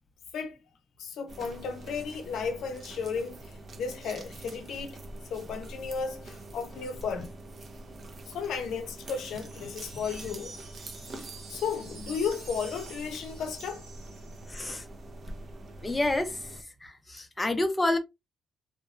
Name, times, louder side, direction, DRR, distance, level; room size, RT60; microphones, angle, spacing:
voice 1, 1.0-5.0 5.3-7.3 8.3-10.6 11.5-13.8, left 6 dB, 75° left, 0.6 m, -34 dB
sound 1, 1.3-16.6, right 2 dB, 45° right, 0.5 m, -45 dB
sound 2, 9.3-14.7, right 4 dB, 60° right, 1.5 m, -48 dB
voice 2, 14.5-14.8 15.8-16.4 16.8-18.0, left 2 dB, 15° left, 0.4 m, -28 dB
2.8 x 2.1 x 2.3 m
cardioid pair, 90°, 0 cm